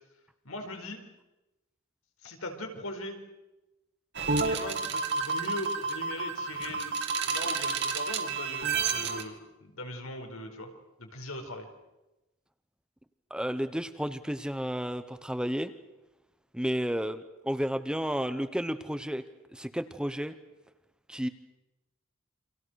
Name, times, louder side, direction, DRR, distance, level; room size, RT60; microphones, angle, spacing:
voice 1, 0.4-1.1 2.2-3.2 4.4-6.9 7.2-10.7 11.0-11.7, left 1 dB, 85° left, 4 dB, 4.9 m, -40 dB
sound 1, 4.1-9.2, right 4 dB, 55° right, 2.6 m, -30 dB
voice 2, 13.3-15.7 16.5-19.2 19.5-20.3 21.1-21.3, equal, 5° right, 10 dB, 1.0 m, -32 dB
29.5 x 26.0 x 6.5 m, 1.0 s
head